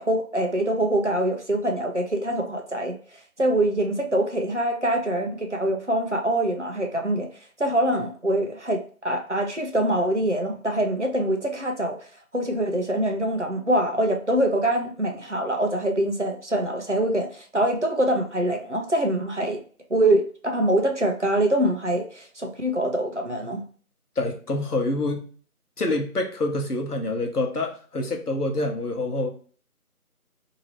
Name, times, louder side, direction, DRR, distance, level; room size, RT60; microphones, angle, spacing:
voice 1, 0.0-7.3 7.6-12.1 12.3-19.6 19.9-23.6, right 1 dB, 50° right, 0.7 m, -24 dB
voice 2, 24.2-25.3 25.8-29.3, left 2 dB, 90° left, 1.0 m, -26 dB
2.8 x 2.8 x 2.9 m
figure-of-eight pair, 175°, 44 cm